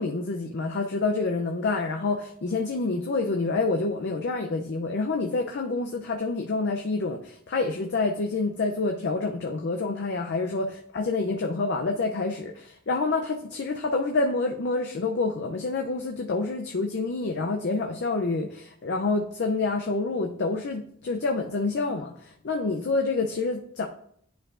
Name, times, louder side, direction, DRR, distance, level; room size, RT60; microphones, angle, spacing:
voice 1, 0.0-23.9, left 3 dB, 55° left, 3 dB, 0.5 m, -27 dB
10.0 x 4.6 x 2.5 m, 0.67 s
head